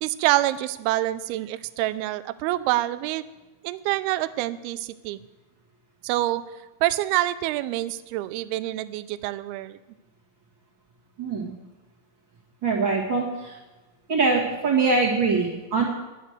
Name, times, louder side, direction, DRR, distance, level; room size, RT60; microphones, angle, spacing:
voice 1, 0.0-3.3 3.6-5.2 6.0-6.4 6.8-9.8, right 16 dB, 85° right, 13 dB, 2.3 m, -26 dB
voice 2, 11.2-11.5 12.6-13.6 14.1-15.8, right 4 dB, 45° right, -4 dB, 1.5 m, -23 dB
11.0 x 10.0 x 6.5 m, 1.1 s
omnidirectional pair, 5.1 m